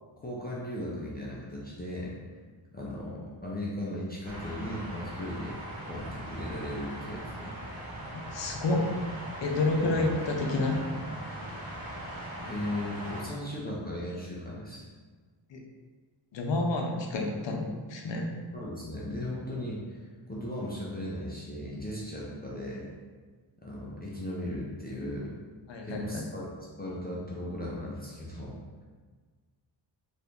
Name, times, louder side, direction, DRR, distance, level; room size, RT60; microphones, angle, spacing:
voice 1, 0.2-2.1 2.7-5.5 5.9-7.5 9.8-10.0 12.4-14.9 18.5-22.9 23.6-25.3 25.8-28.5, left 1 dB, 20° left, -6 dB, 0.4 m, -37 dB
sound 1, 4.2-13.2, right 1 dB, 30° right, 1.3 m, -40 dB
voice 2, 8.1-8.9 9.4-10.8 15.5-15.6 16.3-18.2 25.7-26.2, left 2 dB, 65° left, 1 dB, 0.6 m, -29 dB
2.8 x 2.6 x 3.5 m, 1.5 s
wide cardioid pair, 170°, 47 cm